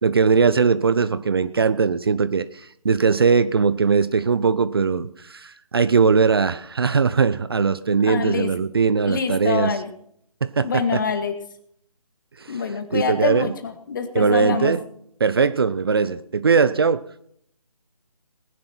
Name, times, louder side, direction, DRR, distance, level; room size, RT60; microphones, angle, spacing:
voice 1, 0.0-9.7 10.4-11.0 12.4-13.5 14.1-14.8 15.2-17.0, right 5 dB, 40° right, 14 dB, 0.6 m, -20 dB
voice 2, 8.0-8.5 9.0-9.9 10.6-11.3 12.5-14.7, left 5 dB, 30° left, 8 dB, 1.9 m, -25 dB
19.5 x 10.5 x 4.5 m, 0.66 s
figure-of-eight pair, 155°, 19 cm